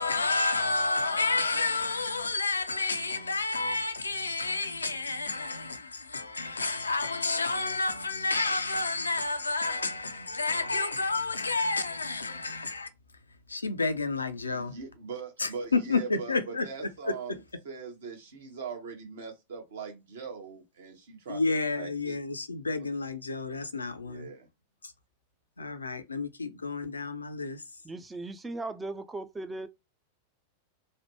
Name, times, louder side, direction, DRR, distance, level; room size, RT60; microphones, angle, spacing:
voice 1, 0.0-12.9 13.5-14.7 15.4-16.7 17.1-17.2 21.3-24.3 24.8-24.9 25.6-27.6, left 3 dB, 80° left, 0.4 m, -30 dB
voice 2, 14.5-21.4 21.8-22.2 24.1-24.5, right 5 dB, 60° right, 1.1 m, -41 dB
voice 3, 27.8-29.7, right 2 dB, 10° right, 0.4 m, -37 dB
3.1 x 2.1 x 3.0 m
figure-of-eight pair, 90°, 0 cm